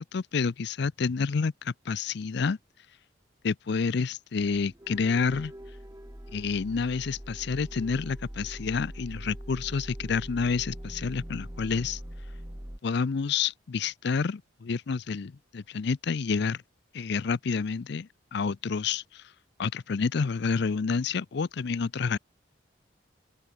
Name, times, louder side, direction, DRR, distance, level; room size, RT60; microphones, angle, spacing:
voice 1, 0.0-2.6 3.4-5.5 6.3-12.0 12.8-16.6 16.9-19.2 19.6-22.2, left 5 dB, 60° left, 0.5 m, -29 dB
sound 1, 4.4-12.8, equal, 15° right, 1.9 m, -42 dB
open air
head